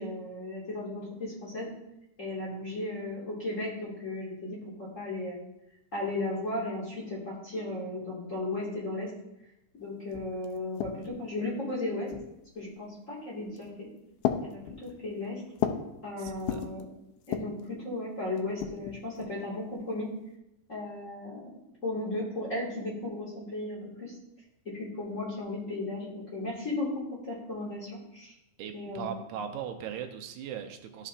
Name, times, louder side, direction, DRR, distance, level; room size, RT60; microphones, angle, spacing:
voice 1, 0.0-1.7 2.2-5.4 5.9-9.1 9.8-12.1 12.5-13.9 14.4-15.4 16.0-16.9 17.3-20.1 20.7-21.5 21.8-24.1 24.7-28.3 28.7-29.2, left 2 dB, 30° left, -7 dB, 1.9 m, -35 dB
sound 1, 9.8-9.9 10.1-11.3 12.1-12.6 13.4-13.8 14.2-15.9 16.3-16.8 17.2-17.7 18.4-19.4, left 10 dB, 85° left, 2.0 m, -35 dB
voice 2, 16.2-16.6 28.6-31.1, right 8 dB, 85° right, 6 dB, 2.1 m, -39 dB
12.5 x 5.5 x 2.5 m, 0.87 s
omnidirectional pair, 3.4 m